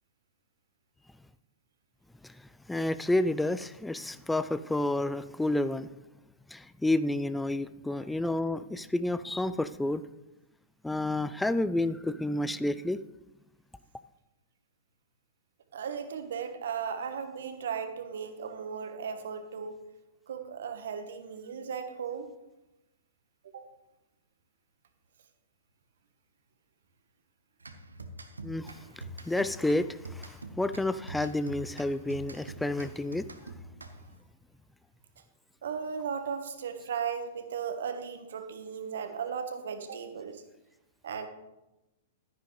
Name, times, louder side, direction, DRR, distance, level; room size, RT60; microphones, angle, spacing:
voice 1, 2.7-5.9 6.5-10.0 10.8-13.0 28.4-33.3, left 1 dB, 5° left, 14 dB, 0.4 m, -30 dB
voice 2, 15.7-19.8 20.3-22.3 23.5-23.7 35.6-40.4 41.0-41.3, right 6 dB, 60° right, 8 dB, 1.2 m, -36 dB
sound 1, 27.6-34.3, right 1 dB, 80° right, 0.9 m, -45 dB
12.5 x 10.5 x 3.2 m, 0.99 s
figure-of-eight pair, 105°, 0 cm